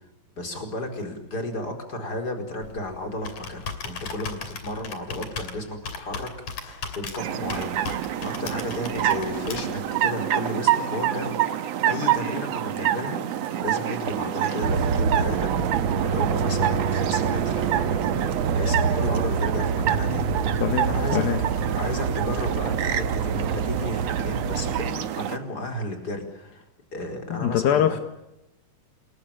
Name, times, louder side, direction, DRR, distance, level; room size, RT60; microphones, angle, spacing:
voice 1, 0.4-11.4 11.8-17.6 18.5-20.3 20.8-21.2 21.8-26.6 26.9-28.0, left 1 dB, 25° left, 4 dB, 5.0 m, -33 dB
Computer keyboard, 2.6-9.9, left 5 dB, 55° left, 3.9 m, -37 dB
sound 1, 7.2-25.4, right 11 dB, 65° right, 1.8 m, -27 dB
sound 2, 14.6-24.9, right 5 dB, 85° right, 1.1 m, -26 dB
voice 2, 20.6-21.4 27.3-28.0, left 10 dB, 75° left, 8 dB, 3.0 m, -24 dB
28.5 x 21.5 x 8.9 m, 0.93 s
omnidirectional pair, 4.3 m